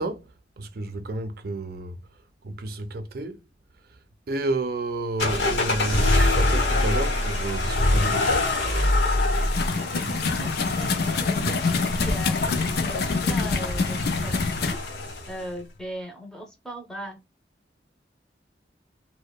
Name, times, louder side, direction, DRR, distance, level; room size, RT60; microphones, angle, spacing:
voice 1, 0.0-3.5 3.8-8.6, right 2 dB, 55° right, 0.5 m, -31 dB
sound 1, 5.2-15.4, left 2 dB, 80° left, 0.9 m, -25 dB
sound 2, 9.3-14.7, left 4 dB, 60° left, 0.4 m, -26 dB
voice 2, 9.7-11.7 12.0-14.8 15.3-17.2, right 1 dB, 5° left, 0.6 m, -39 dB
2.8 x 2.1 x 2.2 m
head